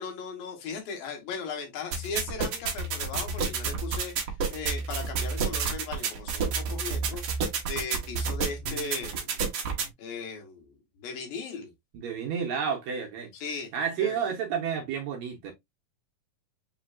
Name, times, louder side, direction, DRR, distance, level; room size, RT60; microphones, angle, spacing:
voice 1, 0.0-9.4 10.0-11.7 13.3-13.7 14.0-14.2, left 5 dB, 90° left, 3.2 m, -38 dB
sound 1, 1.9-9.9, right 5 dB, 90° right, 1.1 m, -30 dB
voice 2, 11.9-13.3 13.7-15.5, right 7 dB, 75° right, 1.8 m, -30 dB
6.1 x 3.3 x 2.4 m
omnidirectional pair, 4.0 m